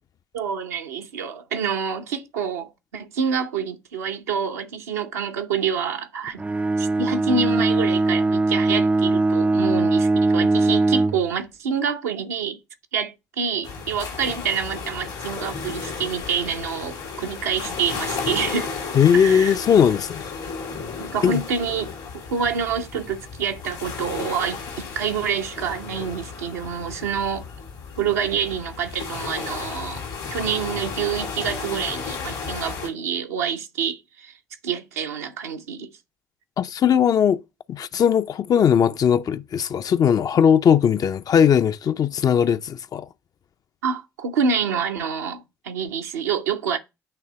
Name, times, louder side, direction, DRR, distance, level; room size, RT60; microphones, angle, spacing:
voice 1, 0.3-6.4 6.8-12.6 12.9-18.7 19.1-19.6 21.0-21.9 22.1-27.4 28.0-30.0 30.3-34.3 34.6-35.9 43.8-46.8, right 6 dB, 80° right, 0.8 m, -27 dB
Bowed string instrument, 6.4-11.3, right 2 dB, 15° right, 0.3 m, -20 dB
sound 1, 13.6-32.9, left 5 dB, 75° left, 2.0 m, -33 dB
voice 2, 18.9-20.3 21.2-21.4 36.6-37.4 37.7-43.1, left 8 dB, 45° left, 0.5 m, -19 dB
8.8 x 3.3 x 5.7 m
figure-of-eight pair, 45°, 8 cm